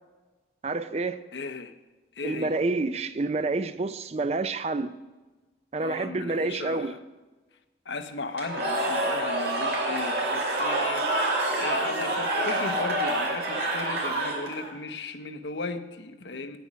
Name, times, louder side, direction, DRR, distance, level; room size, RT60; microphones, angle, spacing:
voice 1, 0.6-1.2 2.2-4.9 5.7-7.0, right 3 dB, 35° right, 12 dB, 0.4 m, -28 dB
voice 2, 1.3-1.7 2.1-2.5 5.8-7.0 7.9-16.6, left 3 dB, 75° left, 9 dB, 0.8 m, -36 dB
Cheering / Crowd, 8.3-14.7, right 1 dB, 55° right, 2.7 m, -27 dB
9.5 x 9.2 x 6.2 m, 1.2 s
head